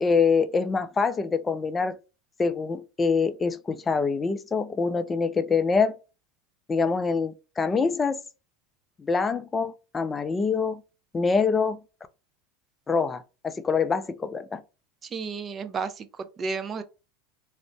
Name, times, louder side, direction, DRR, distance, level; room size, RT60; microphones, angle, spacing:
voice 1, 0.0-2.0 2.4-5.9 6.7-8.2 9.0-10.8 11.1-11.8 12.9-14.6, left 5 dB, 20° left, 0.4 m, -25 dB
voice 2, 15.1-16.8, right 5 dB, 30° right, 0.5 m, -32 dB
2.4 x 2.1 x 3.3 m
hypercardioid pair, 95°, 0 cm